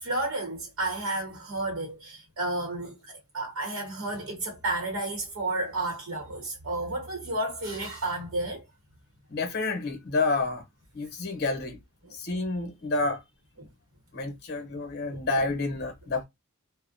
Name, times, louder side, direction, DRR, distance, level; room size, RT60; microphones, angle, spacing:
voice 1, 0.0-3.0 3.3-8.6 12.0-12.1 15.1-15.2, right 2 dB, 65° right, 0.9 m, -31 dB
voice 2, 9.3-10.6 10.9-11.8 12.1-13.2 14.1-16.2, left 3 dB, 45° left, 0.8 m, -29 dB
2.4 x 2.1 x 2.5 m
head